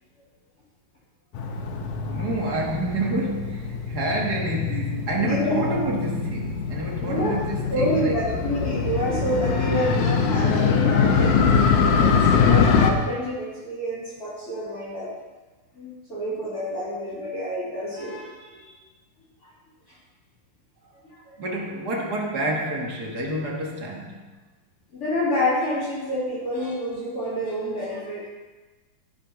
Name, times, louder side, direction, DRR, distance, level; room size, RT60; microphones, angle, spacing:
Motorcycle, 1.3-12.9, left 6 dB, 80° left, 2.4 m, -23 dB
voice 1, 2.0-8.5 21.4-24.2, right 1 dB, 40° right, -1 dB, 1.5 m, -28 dB
voice 2, 5.2-5.8 7.0-7.4 7.7-15.1 15.7-18.7 19.4-19.5 19.9-20.0 24.9-28.2, equal, 30° left, -7 dB, 3.1 m, -28 dB
14.5 x 6.6 x 5.7 m, 1.2 s
omnidirectional pair, 3.5 m